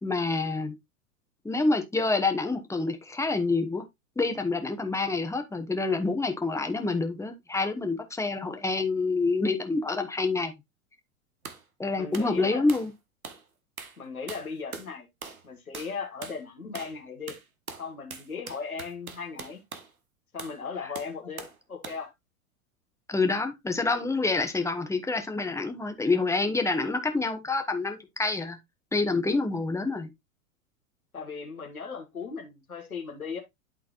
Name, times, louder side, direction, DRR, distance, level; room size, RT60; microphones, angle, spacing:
voice 1, 0.0-0.7 1.4-3.8 4.2-10.6 11.8-12.9 23.1-28.6 28.9-30.1, left 3 dB, 5° left, 1.2 m, -27 dB
sound 1, 11.5-11.6 12.1-12.3 12.7-12.9 13.2-13.4 13.8-14.0 14.3-14.9 15.2-15.5 15.7-16.0 16.2-16.4 16.8-17.0 17.3-19.9 20.4-20.6 21.0-21.6 21.8-22.1, right 5 dB, 90° right, 1.2 m, -42 dB
voice 2, 12.0-12.6 14.0-15.1 15.4-17.4 17.8-19.6 20.3-22.1 31.1-33.4, left 5 dB, 90° left, 1.7 m, -37 dB
11.5 x 3.9 x 2.5 m
hypercardioid pair, 95°, 42 cm